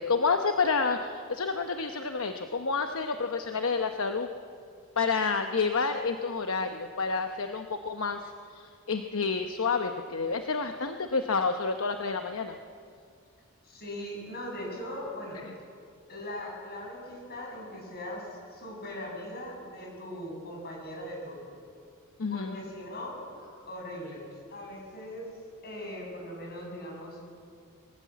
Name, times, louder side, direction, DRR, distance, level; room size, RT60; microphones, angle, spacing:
voice 1, 0.0-4.3 5.0-12.6 15.4-15.5 22.2-22.6, left 4 dB, 70° left, 6 dB, 0.9 m, -29 dB
voice 2, 13.6-15.4 16.1-21.5 22.3-25.3 25.6-27.2, left 1 dB, 50° left, -1 dB, 7.5 m, -40 dB
22.5 x 18.5 x 8.5 m, 2.3 s
head